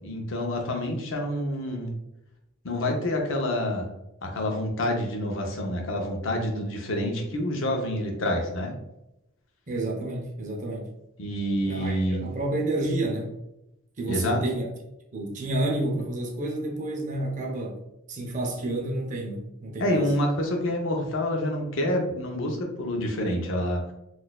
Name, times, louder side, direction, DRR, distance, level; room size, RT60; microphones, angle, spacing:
voice 1, 0.0-1.9 2.6-3.8 4.2-8.7 11.2-12.2 14.1-14.4 19.8-23.8, left 1 dB, 70° left, 2 dB, 0.6 m, -27 dB
voice 2, 9.7-10.9 11.7-13.4 14.0-14.7 15.1-17.8 18.1-20.0, right 2 dB, 35° right, 0 dB, 0.6 m, -30 dB
4.0 x 2.4 x 2.3 m, 0.88 s
head